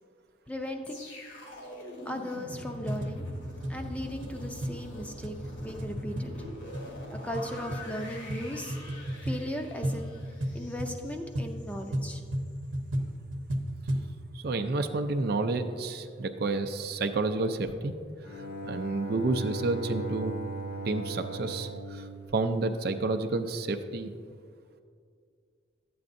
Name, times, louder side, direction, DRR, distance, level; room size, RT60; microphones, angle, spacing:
voice 1, 0.5-1.1 2.1-3.3 3.7-6.3 7.2-8.8 9.2-10.1 10.5-12.2, left 1 dB, 5° left, 3 dB, 0.5 m, -37 dB
sound 1, 0.8-11.9 12.3-12.5, left 1 dB, 75° left, 1.8 m, -44 dB
sound 2, 2.4-14.1, equal, 80° right, 0.8 m, -35 dB
voice 2, 14.3-17.9 18.6-20.3 20.9-24.1, right 3 dB, 55° right, 7 dB, 0.4 m, -30 dB
Bowed string instrument, 18.2-23.1, right 2 dB, 50° left, 0.9 m, -38 dB
12.0 x 8.5 x 2.6 m, 2.2 s
head